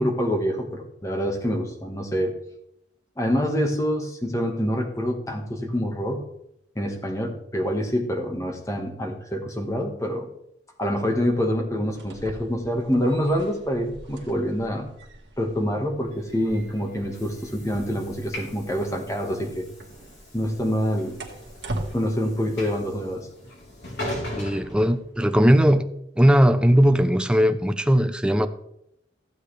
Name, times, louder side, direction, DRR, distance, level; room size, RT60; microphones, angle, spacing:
voice 1, 0.0-2.3 3.2-6.2 6.7-10.3 10.8-14.9 15.4-19.7 20.3-21.2 21.9-23.3, equal, 15° left, 1.5 m, -26 dB
sound 1, 11.8-21.9, right 1 dB, 85° right, 1.8 m, -41 dB
Train / Sliding door, 16.3-25.6, left 1 dB, 70° left, 4.0 m, -39 dB
voice 2, 24.4-25.8 26.2-28.5, equal, 5° right, 0.5 m, -18 dB
15.0 x 8.4 x 3.3 m
head